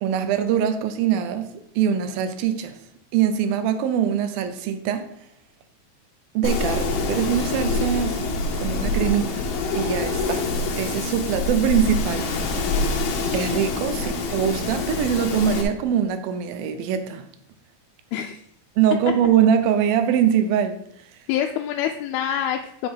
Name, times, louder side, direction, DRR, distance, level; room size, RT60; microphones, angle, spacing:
voice 1, 0.0-1.5 1.8-2.8 3.1-5.1 6.3-9.5 9.7-10.5 10.8-12.3 12.6-12.9 13.3-17.3 18.8-20.8, right 8 dB, 80° right, 2.4 m, -23 dB
Wind, 6.4-15.6, left 3 dB, 70° left, 2.5 m, -26 dB
voice 2, 18.1-18.4 21.3-22.9, left 10 dB, 90° left, 2.5 m, -26 dB
7.2 x 4.9 x 5.4 m
omnidirectional pair, 4.4 m